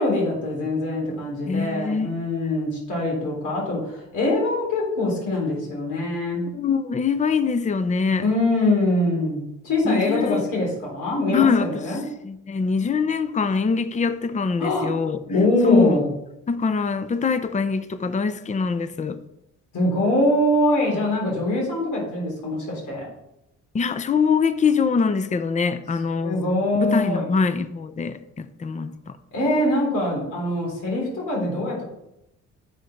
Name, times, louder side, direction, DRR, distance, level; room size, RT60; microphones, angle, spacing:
voice 1, 0.0-6.5 8.2-12.0 14.6-14.9 15.3-16.0 19.7-23.1 26.2-27.3 29.3-31.8, left 1 dB, 85° left, 3.6 m, -23 dB
voice 2, 1.5-2.1 6.5-8.3 9.8-10.4 11.3-12.0 12.2-15.2 15.6-16.0 16.5-19.2 23.7-26.4 26.8-29.2, left 5 dB, 25° left, 0.6 m, -23 dB
8.0 x 4.9 x 5.7 m
cardioid pair, 90°, 30 cm